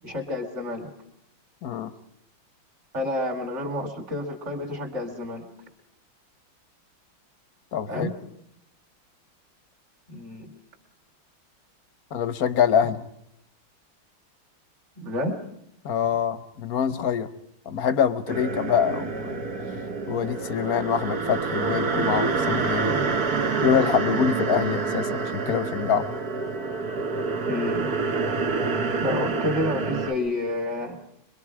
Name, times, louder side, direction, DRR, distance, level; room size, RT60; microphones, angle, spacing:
voice 1, 0.0-0.9 2.9-5.4 7.9-8.1 10.1-10.5 15.0-15.4 27.5-27.9 29.0-31.0, left 1 dB, 35° right, 3 dB, 3.2 m, -29 dB
voice 2, 1.6-1.9 7.7-8.1 12.1-13.0 15.8-17.3 17.6-19.4 20.1-22.9 23.6-26.1, left 8 dB, 55° left, 12 dB, 1.3 m, -25 dB
sound 1, 18.3-30.1, right 4 dB, 50° right, 1.9 m, -27 dB
25.0 x 23.5 x 4.8 m, 0.78 s
omnidirectional pair, 2.3 m